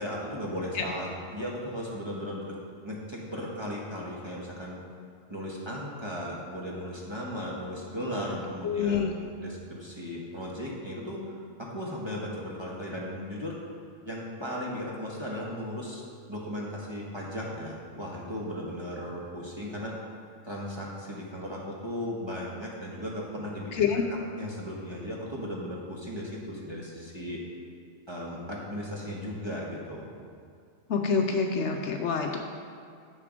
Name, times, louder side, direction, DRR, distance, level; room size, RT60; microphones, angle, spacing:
voice 1, 0.0-2.5 2.8-4.8 5.3-13.6 14.0-16.0 16.3-20.0 20.4-27.4 28.1-30.1, equal, 20° right, -4 dB, 1.2 m, -36 dB
voice 2, 8.6-9.1 23.7-24.0 30.9-32.4, left 6 dB, 65° left, 3 dB, 0.9 m, -26 dB
7.6 x 6.6 x 5.2 m, 2.3 s
omnidirectional pair, 1.4 m